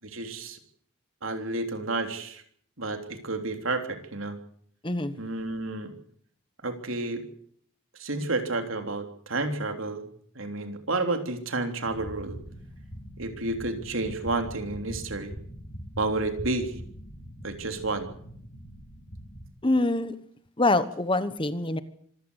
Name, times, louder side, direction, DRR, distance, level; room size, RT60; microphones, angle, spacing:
voice 1, 0.0-0.6 1.2-2.4 2.8-4.4 5.2-5.9 6.6-7.2 7.9-10.1 10.3-12.4 13.2-15.3 16.0-16.7 17.4-18.1, right 2 dB, 70° right, 6 dB, 3.4 m, -30 dB
voice 2, 4.8-5.2 19.6-20.2 20.6-21.8, left 2 dB, 25° left, 13 dB, 1.2 m, -25 dB
sound 1, 11.8-19.4, equal, 45° left, 5.6 m, -42 dB
25.5 x 15.5 x 8.1 m, 0.62 s
head